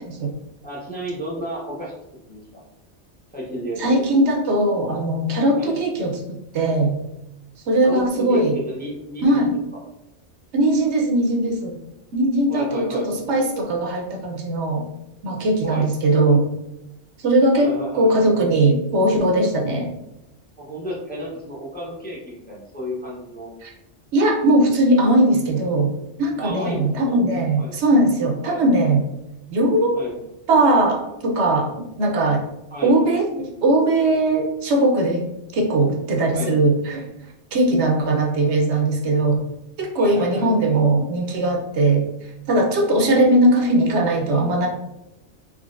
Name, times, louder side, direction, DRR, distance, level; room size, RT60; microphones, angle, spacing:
voice 1, 0.6-1.9 2.3-2.6 3.3-3.9 5.6-5.8 7.8-8.0 8.3-9.4 9.7-9.8 12.5-13.1 15.6-15.9 17.6-18.2 20.6-23.5 26.4-27.1 27.6-27.8 28.4-28.7 29.9-30.2 32.7-33.0 36.3-36.6 40.0-40.5 43.0-43.3, equal, 10° left, -4 dB, 0.5 m, -32 dB
voice 2, 3.8-7.0 7.7-8.6 9.2-9.6 10.5-11.7 12.1-14.9 15.2-16.5 17.2-19.9 23.6-23.7 24.1-25.9 26.2-29.0 29.5-30.0 30.5-31.7 32.0-32.4 32.8-35.3 35.5-37.1 37.5-39.5 39.8-42.1 42.5-44.7, right 1 dB, 75° right, 1 dB, 1.0 m, -19 dB
3.7 x 3.1 x 2.5 m, 0.87 s
omnidirectional pair, 1.2 m